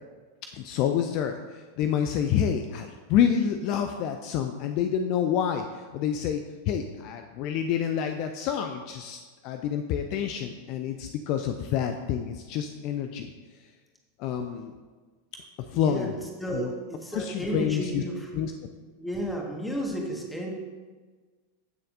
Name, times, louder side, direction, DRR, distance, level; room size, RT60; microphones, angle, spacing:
voice 1, 0.5-13.3 14.2-14.7 15.6-16.1 16.5-16.7 17.1-18.0 18.3-18.5, left 8 dB, 40° left, 6 dB, 0.5 m, -28 dB
voice 2, 15.7-16.1 16.4-18.3 19.0-20.5, right 1 dB, 5° left, 0 dB, 1.6 m, -32 dB
15.0 x 6.4 x 2.6 m, 1.4 s
figure-of-eight pair, 90°, 0 cm